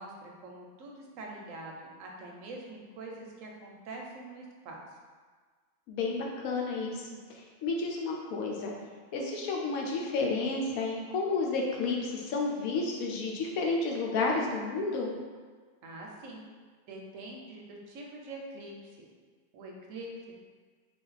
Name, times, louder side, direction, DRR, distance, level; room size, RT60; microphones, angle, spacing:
voice 1, 0.0-4.8 15.8-16.4 16.9-19.1 19.5-20.3, right 2 dB, 70° right, 0 dB, 0.9 m, -44 dB
voice 2, 5.9-8.7 9.1-15.1, left 3 dB, 80° left, 0 dB, 1.1 m, -31 dB
3.3 x 2.6 x 3.9 m, 1.5 s
omnidirectional pair, 1.5 m